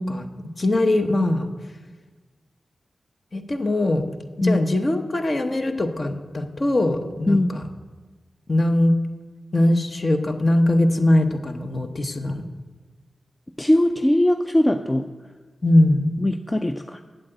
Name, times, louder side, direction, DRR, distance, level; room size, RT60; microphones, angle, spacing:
voice 1, 0.0-1.5 3.3-4.0 4.4-7.6 8.5-8.9 9.5-12.4 15.6-16.1, left 1 dB, 45° left, 7 dB, 1.0 m, -21 dB
voice 2, 13.6-15.1 16.2-17.0, left 1 dB, 20° left, 8 dB, 0.5 m, -20 dB
8.4 x 7.9 x 8.0 m, 1.4 s
cardioid pair, 55°, 0 cm